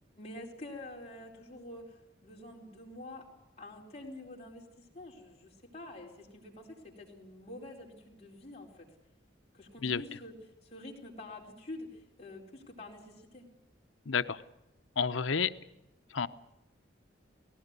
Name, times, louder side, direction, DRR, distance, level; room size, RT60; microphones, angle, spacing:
voice 1, 0.1-3.3 3.6-8.9 9.5-10.3 10.6-13.4, left 1 dB, 35° left, -2 dB, 4.4 m, -47 dB
voice 2, 14.1-14.4 15.0-15.5 16.1-16.3, left 6 dB, 85° left, 11 dB, 0.9 m, -30 dB
19.0 x 17.0 x 9.6 m, 0.88 s
head